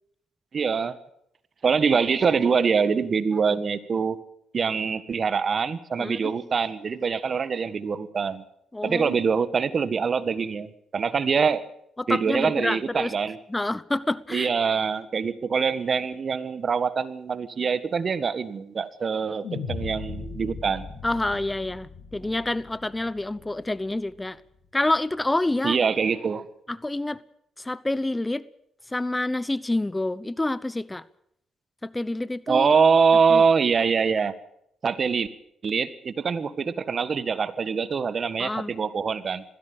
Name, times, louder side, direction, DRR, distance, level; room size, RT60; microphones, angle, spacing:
voice 1, 0.5-1.0 1.6-4.2 4.5-8.4 8.8-11.7 12.1-13.4 14.3-20.9 25.6-26.4 32.5-34.3 34.8-35.3 35.6-39.4, right 5 dB, 50° right, 14 dB, 1.6 m, -24 dB
voice 2, 6.0-6.3 8.7-9.2 12.0-13.1 13.5-14.5 21.0-24.4 24.7-25.8 26.7-27.2 27.6-28.4 28.9-31.0 31.8-32.7 33.3-33.4 38.4-38.7, left 2 dB, 15° left, 18 dB, 0.9 m, -27 dB
sound 1, 19.4-23.8, left 5 dB, 65° left, 7.6 m, -38 dB
20.5 x 16.0 x 8.9 m, 0.75 s
supercardioid pair, 55°, 0 cm